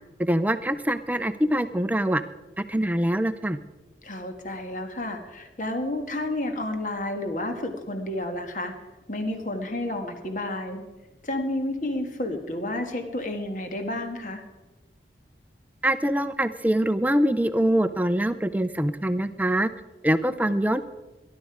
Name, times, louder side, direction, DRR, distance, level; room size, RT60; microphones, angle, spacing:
voice 1, 0.2-2.2 2.6-3.6 15.8-19.7 20.0-20.8, right 1 dB, 10° right, 11 dB, 0.4 m, -24 dB
voice 2, 4.0-8.7 9.1-10.8 11.2-14.4, left 1 dB, 45° left, 5 dB, 1.6 m, -31 dB
19.5 x 11.5 x 4.8 m, 1.1 s
head